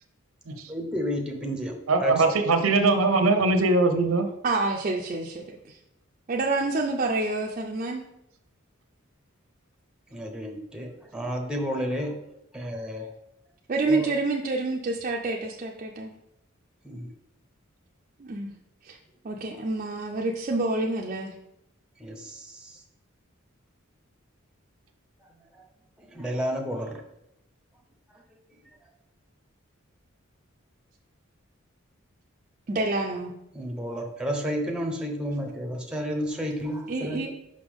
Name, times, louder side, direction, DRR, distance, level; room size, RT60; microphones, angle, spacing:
voice 1, 0.7-2.4 10.1-12.2 12.5-13.1 13.9-14.1 16.8-17.1 22.0-22.8 25.5-25.6 26.0-27.0 33.5-37.3, equal, 5° right, 2 dB, 0.7 m, -31 dB
voice 2, 1.9-4.3, right 3 dB, 90° right, 7 dB, 0.7 m, -21 dB
voice 3, 4.4-5.8 6.3-8.0 13.7-16.1 18.2-18.5 18.8-19.0 19.2-21.3 32.7-33.3 36.9-37.3, right 2 dB, 40° right, -1 dB, 0.4 m, -28 dB
5.5 x 5.1 x 3.5 m, 0.83 s
head